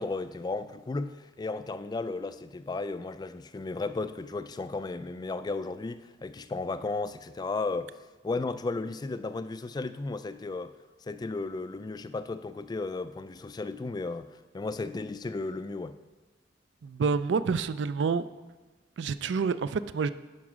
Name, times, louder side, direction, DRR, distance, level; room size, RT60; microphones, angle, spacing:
voice 1, 0.0-7.9 8.2-10.7 11.1-14.3 14.5-16.0, left 3 dB, 20° left, 0.3 m, -34 dB
voice 2, 16.8-18.2 19.0-20.1, right 5 dB, 70° right, 0.4 m, -28 dB
11.0 x 4.7 x 6.1 m
head